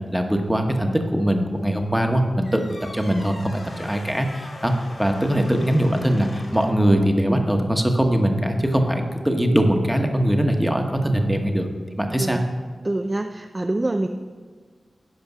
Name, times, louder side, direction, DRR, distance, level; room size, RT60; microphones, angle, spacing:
voice 1, 0.1-2.6 2.9-4.7 5.0-11.7 11.9-12.4, equal, 5° right, 4 dB, 1.2 m, -21 dB
sound 1, 2.4-6.9, left 2 dB, 70° left, 2.2 m, -42 dB
voice 2, 12.8-14.1, right 2 dB, 30° right, 5 dB, 0.5 m, -25 dB
11.0 x 5.1 x 6.1 m, 1.5 s
cardioid pair, 60°, 0 cm